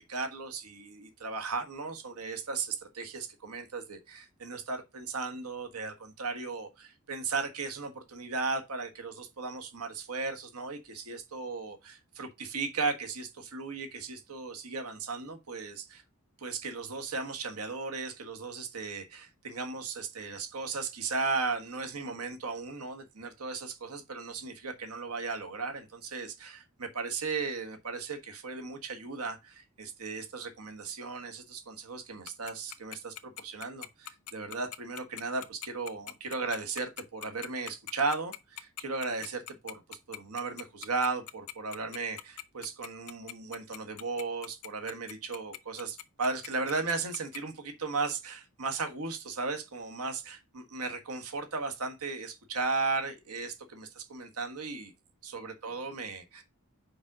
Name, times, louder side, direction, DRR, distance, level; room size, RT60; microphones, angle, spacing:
voice 1, 0.0-16.0 16.4-54.9 55.2-56.4, right 4 dB, 90° right, 1.4 m, -36 dB
Tick-tock, 32.3-47.4, left 13 dB, 90° left, 0.7 m, -41 dB
5.3 x 5.0 x 6.0 m
head